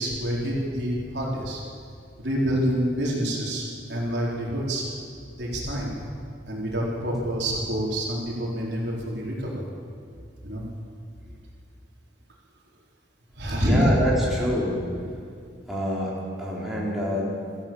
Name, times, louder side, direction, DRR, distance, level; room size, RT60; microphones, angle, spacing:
voice 1, 0.0-1.6 2.2-4.8 5.4-6.1 6.4-9.6 10.4-10.6 13.4-13.9, equal, 60° right, -3 dB, 4.3 m, -27 dB
voice 2, 13.6-14.9 15.7-17.7, equal, ahead, -6 dB, 4.6 m, -27 dB
26.0 x 15.0 x 7.3 m, 2.3 s
head